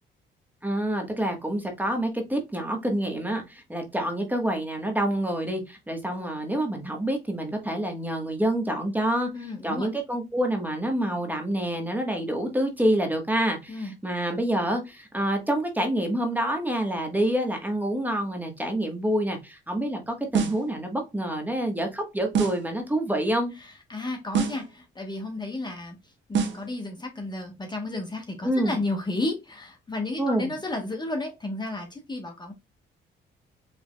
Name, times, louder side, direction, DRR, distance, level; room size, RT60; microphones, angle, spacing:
voice 1, 0.6-9.3 9.6-23.5 28.4-28.8 30.2-30.5, right 1 dB, 10° right, 3 dB, 1.3 m, -27 dB
voice 2, 9.3-9.9 13.7-13.9 23.6-32.5, left 2 dB, 20° left, 3 dB, 1.1 m, -33 dB
sound 1, 20.3-20.7 22.3-22.7 24.3-24.7 26.3-26.7, right 6 dB, 65° right, 1.0 m, -26 dB
5.1 x 3.3 x 2.2 m, 0.24 s
cardioid pair, 90°, 20 cm